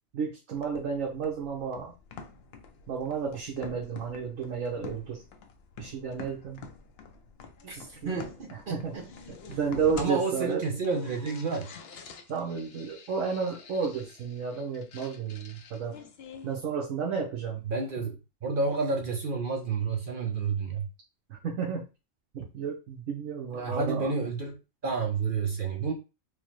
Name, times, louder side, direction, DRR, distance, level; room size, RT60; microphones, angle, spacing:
voice 1, 0.1-1.9 2.9-5.2 5.8-6.6 7.6-8.2 8.7-8.9 9.5-10.6 12.3-16.0 16.4-17.6 21.3-21.9 22.3-24.1, right 6 dB, 75° right, 1.2 m, -32 dB
sound 1, 0.5-16.6, left 5 dB, 60° left, 0.7 m, -48 dB
voice 2, 7.7-9.1 10.0-11.7 17.7-20.9 23.5-25.9, right 4 dB, 50° right, 0.7 m, -30 dB
4.8 x 2.2 x 3.0 m
omnidirectional pair, 1.4 m